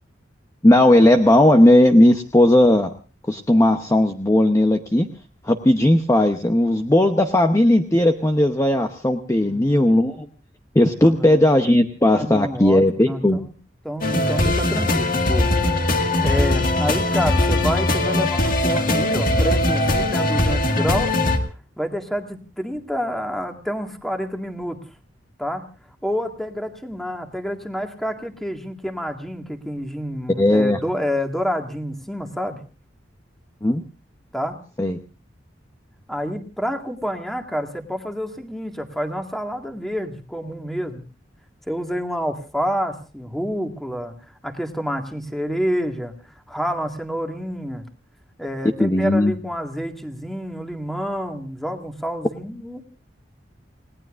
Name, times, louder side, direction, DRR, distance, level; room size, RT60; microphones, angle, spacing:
voice 1, 0.6-2.9 3.3-5.1 5.4-10.3 10.7-13.4 30.4-30.8 33.6-33.8 34.8-35.0 48.8-49.4, left 1 dB, 15° left, 6 dB, 0.8 m, -16 dB
voice 2, 9.4-10.0 11.0-11.4 12.1-13.5 13.8-15.5 16.2-21.2 21.8-24.8 25.4-25.6 26.0-32.6 34.3-34.6 36.1-41.0 41.7-44.1 44.4-46.1 46.5-47.8 48.4-52.8, equal, ahead, 4 dB, 1.9 m, -28 dB
sound 1, 14.0-21.4, left 1 dB, 50° left, 1.9 m, -20 dB
30.0 x 18.5 x 2.5 m, 0.34 s
head